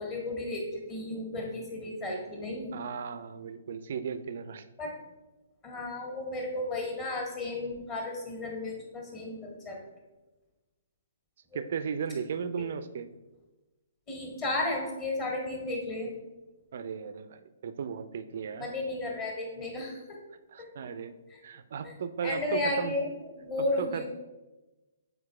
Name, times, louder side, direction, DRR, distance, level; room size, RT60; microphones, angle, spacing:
voice 1, 0.0-2.8 4.8-4.9 5.6-9.8 11.5-11.6 14.1-16.1 18.6-20.2 20.6-20.7 21.3-21.4 21.8-21.9 22.2-23.1 23.4-24.1, left 2 dB, 25° left, -1 dB, 1.8 m, -33 dB
voice 2, 2.7-4.6 11.5-13.1 16.7-18.7 20.5-21.1 21.4-23.0 23.6-24.1, right 6 dB, 50° right, 11 dB, 0.5 m, -36 dB
7.6 x 4.6 x 3.2 m, 1.1 s
figure-of-eight pair, 125°, 0 cm